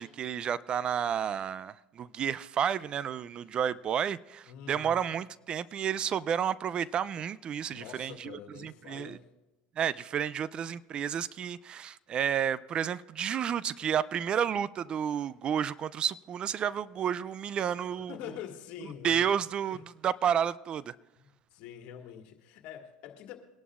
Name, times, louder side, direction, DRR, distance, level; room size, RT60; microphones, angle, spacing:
voice 1, 0.0-9.2 9.8-18.2 19.0-20.9, right 8 dB, 40° right, 0.4 m, -31 dB
voice 2, 4.5-5.0 7.7-9.3 17.9-19.3 19.7-19.8 21.2-23.4, left 9 dB, 60° left, 2.0 m, -45 dB
23.0 x 11.0 x 2.5 m
supercardioid pair, 95°, 3 cm